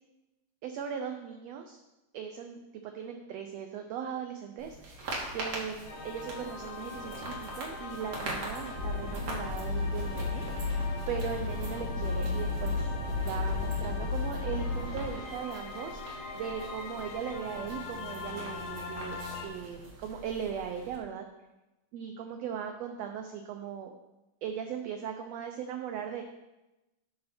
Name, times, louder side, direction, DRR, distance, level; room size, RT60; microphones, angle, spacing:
voice 1, 0.6-1.8 2.1-10.4 11.1-12.8 13.2-21.2 21.9-23.9 24.4-26.2, right 8 dB, 80° right, 5 dB, 1.5 m, -38 dB
sound 1, 4.6-21.0, right 2 dB, 55° right, 2.8 m, -43 dB
sound 2, 5.9-19.5, left 4 dB, 85° left, 2.9 m, -42 dB
sound 3, 8.7-15.1, left 3 dB, 60° left, 5.1 m, -33 dB
11.5 x 6.5 x 4.3 m, 1.0 s
omnidirectional pair, 3.7 m